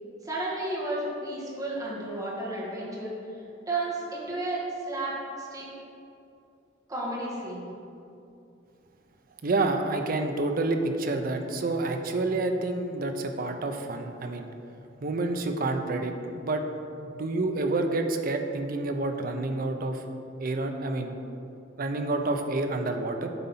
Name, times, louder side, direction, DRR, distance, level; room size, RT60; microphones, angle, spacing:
voice 1, 0.2-3.2 3.7-5.7 6.9-7.7, right 2 dB, 20° right, -6 dB, 1.6 m, -32 dB
voice 2, 9.4-14.4 15.0-16.6 17.0-20.0 20.4-21.1 21.8-23.3, right 2 dB, 50° right, 5 dB, 0.6 m, -28 dB
8.2 x 4.0 x 5.6 m, 2.7 s
head